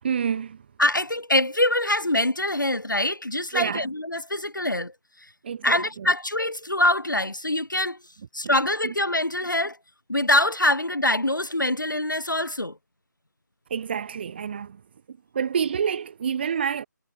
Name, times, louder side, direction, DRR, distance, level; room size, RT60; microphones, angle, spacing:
voice 1, 0.0-0.7 3.5-3.9 5.4-6.1 8.4-8.6 8.8-8.9 13.7-14.8 15.1-16.9, right 7 dB, 30° right, 2.7 m, -28 dB
voice 2, 0.8-4.9 5.2-5.3 5.6-8.0 8.3-9.8 10.1-12.8, left 1 dB, 85° left, 1.4 m, -24 dB
figure-of-eight pair, 155°, 10 cm